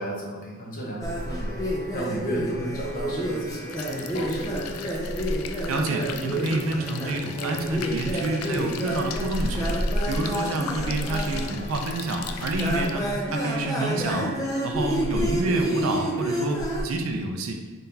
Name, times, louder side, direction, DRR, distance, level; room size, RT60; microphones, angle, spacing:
voice 1, 0.0-1.6 1.9-4.6, equal, 40° left, -3 dB, 0.9 m, -34 dB
sound 1, 1.0-16.8, equal, 15° left, 0.5 m, -29 dB
sound 2, 3.7-12.9, left 7 dB, 85° left, 0.3 m, -39 dB
voice 2, 5.7-9.7 10.1-14.4 14.6-17.6, right 2 dB, 70° right, 4 dB, 0.5 m, -28 dB
3.8 x 3.3 x 2.8 m, 1.3 s
head